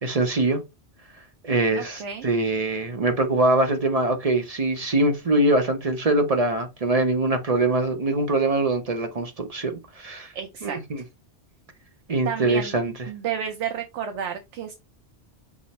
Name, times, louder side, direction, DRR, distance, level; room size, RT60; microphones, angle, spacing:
voice 1, 0.0-0.6 1.4-10.3 10.6-11.0 12.1-12.9, right 2 dB, 40° right, 0.6 m, -23 dB
voice 2, 1.7-2.3 10.3-10.8 12.2-12.7 13.1-14.7, right 8 dB, 85° right, 1.0 m, -31 dB
6.1 x 2.1 x 4.0 m
omnidirectional pair, 1.2 m